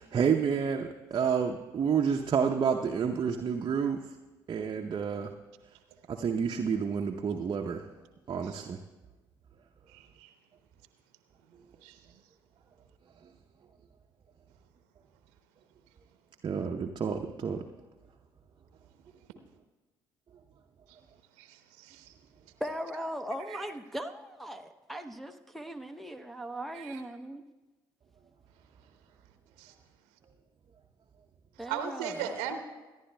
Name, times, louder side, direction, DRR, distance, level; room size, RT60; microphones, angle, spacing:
voice 1, 0.1-4.0 4.5-5.3 6.1-7.8 8.3-8.8 16.4-17.6, right 6 dB, 40° right, 0.7 m, -29 dB
voice 2, 9.9-10.3 11.8-12.0 20.9-21.0 21.4-22.1 23.5-23.6 26.7-27.0 29.6-29.7 31.7-32.6, right 8 dB, 70° right, 0.8 m, -38 dB
voice 3, 22.6-27.4 31.6-32.3, equal, ahead, 0.7 m, -39 dB
24.5 x 11.0 x 2.2 m
figure-of-eight pair, 50°, 12 cm